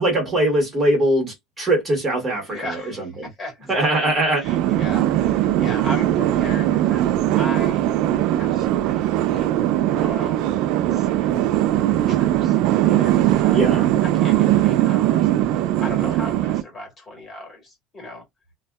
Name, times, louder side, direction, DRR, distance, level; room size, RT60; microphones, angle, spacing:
voice 1, 0.0-3.3 3.7-4.5 13.5-13.9, right 1 dB, 20° right, 1.3 m, -21 dB
voice 2, 2.5-7.1 7.4-7.9 8.4-10.5 10.9-11.5 12.1-12.6 12.9-18.2, left 1 dB, 25° left, 1.5 m, -37 dB
sound 1, 4.4-16.6, right 13 dB, 65° right, 0.3 m, -20 dB
2.6 x 2.2 x 2.2 m
cardioid pair, 140°, 0 cm